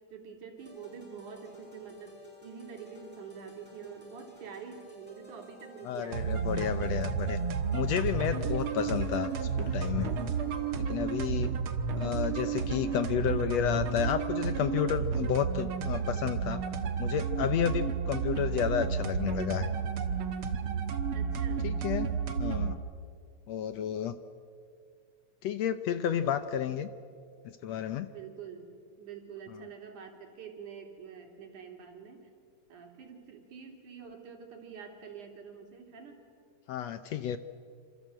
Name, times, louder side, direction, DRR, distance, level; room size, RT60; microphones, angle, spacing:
voice 1, 0.0-6.6 21.1-21.7 28.1-32.3 32.7-36.2, right 6 dB, 70° right, 3 dB, 4.5 m, -46 dB
sound 1, 0.6-10.9, equal, 5° right, 6.0 m, -54 dB
voice 2, 5.8-7.4 7.7-10.1 10.8-11.5 12.0-16.6 17.0-19.7 21.6-22.1 22.4-22.8 23.5-24.2 25.4-26.9 27.6-28.1 36.7-37.4, left 9 dB, 70° left, 11 dB, 1.7 m, -31 dB
sound 2, 6.1-22.7, right 6 dB, 50° right, 1.9 m, -32 dB
27.5 x 27.0 x 7.7 m, 2.3 s
omnidirectional pair, 3.6 m